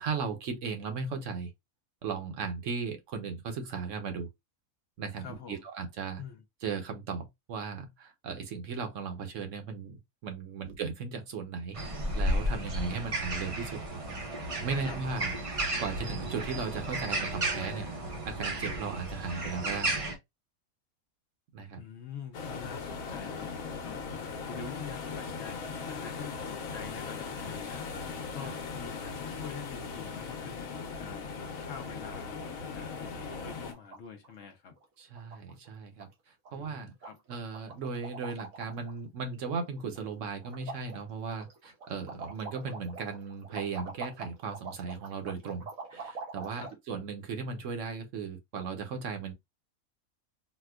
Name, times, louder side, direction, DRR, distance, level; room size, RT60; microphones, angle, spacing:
voice 1, 0.0-1.5 2.0-4.3 5.0-6.2 6.6-11.8 12.1-13.8 14.3-15.3 15.8-17.9 18.2-20.0 21.5-21.8 28.4-28.5 33.4-33.5 35.0-36.9 37.3-49.3, right 5 dB, 65° right, 1.0 m, -37 dB
voice 2, 5.2-5.7 6.2-6.4 14.8-15.0 21.8-34.8 36.5-37.2 46.5-46.7, left 6 dB, 65° left, 0.8 m, -46 dB
sound 1, 11.8-20.2, right 1 dB, 40° right, 0.5 m, -33 dB
sound 2, 22.3-33.7, left 5 dB, 85° left, 1.2 m, -39 dB
sound 3, 31.5-32.0 32.3-32.4 32.6-32.9 33.2-34.0 34.2-34.5 34.8-34.9 35.1-35.7 36.0-36.1 36.4-36.8 37.0-39.0 39.3-40.1 40.4-46.7, right 4 dB, 90° right, 1.4 m, -44 dB
4.2 x 2.2 x 2.2 m
omnidirectional pair, 1.4 m